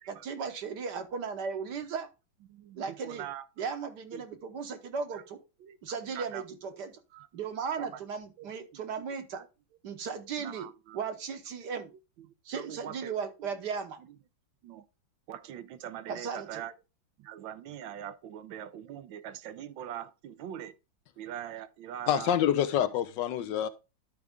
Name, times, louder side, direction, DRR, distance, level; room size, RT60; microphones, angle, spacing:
voice 1, 0.1-2.1 2.7-3.2 3.6-5.4 5.8-7.0 7.3-9.4 9.8-10.7 10.9-11.9 12.4-14.0 16.1-16.6, right 6 dB, 60° right, 1.6 m, -36 dB
voice 2, 2.5-3.4 4.1-4.3 5.1-5.2 5.6-5.8 6.1-6.5 7.1-7.3 7.8-8.0 8.4-9.5 10.4-11.0 11.6-11.7 12.2-13.5 14.0-14.2 14.6-14.8 15.3-16.7 17.2-20.7 21.2-22.3, right 10 dB, 80° right, 1.4 m, -43 dB
voice 3, 22.1-23.7, left 10 dB, 75° left, 1.2 m, -27 dB
11.5 x 4.8 x 3.5 m
omnidirectional pair, 2.1 m